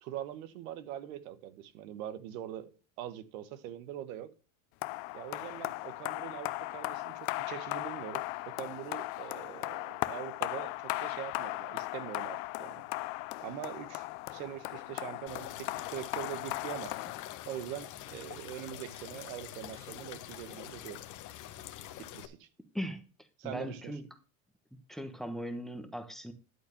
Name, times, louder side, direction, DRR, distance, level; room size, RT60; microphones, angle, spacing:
voice 1, 0.0-4.3 5.1-12.8 13.4-17.2 17.4-21.0 22.0-22.5 23.4-23.9, right 11 dB, 80° right, 1.3 m, -43 dB
sound 1, 4.8-17.8, left 20 dB, 70° left, 0.7 m, -38 dB
sound 2, 15.3-22.3, left 12 dB, 45° left, 1.1 m, -46 dB
voice 2, 22.7-24.1 24.9-26.3, equal, ahead, 1.1 m, -39 dB
11.0 x 4.4 x 6.9 m
supercardioid pair, 125°, 40 cm